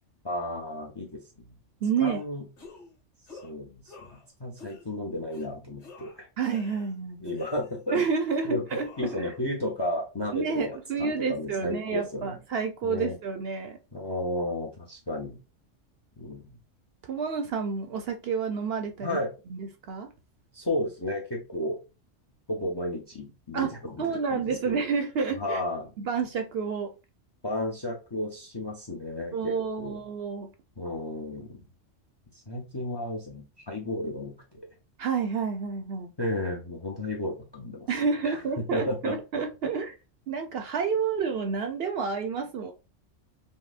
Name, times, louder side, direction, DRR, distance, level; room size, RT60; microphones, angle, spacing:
voice 1, 0.2-1.2 2.0-2.4 3.3-6.3 7.2-8.0 8.4-8.6 9.0-12.4 12.8-13.2 13.9-15.4 16.2-16.6 19.0-19.3 20.5-21.8 22.5-24.0 24.3-24.8 25.4-25.9 27.4-30.0 30.8-31.6 32.5-34.4 36.2-37.9 38.2-38.4 38.7-39.2, left 1 dB, 30° left, 0.5 m, -33 dB
voice 2, 1.8-2.2 6.4-7.2 7.9-9.3 10.3-13.8 17.0-19.2 19.5-20.1 23.5-25.6 26.0-26.9 29.3-30.5 35.0-36.1 37.9-39.9 40.3-42.7, right 5 dB, 65° right, 0.7 m, -29 dB
sound 1, 2.0-2.2 2.6-2.9 3.3-3.5 3.9-4.2 4.6-4.9 5.3-5.5 5.8-6.9 7.2-7.9 8.3-9.3, left 3 dB, 70° left, 1.9 m, -48 dB
5.3 x 2.0 x 2.4 m
omnidirectional pair, 1.3 m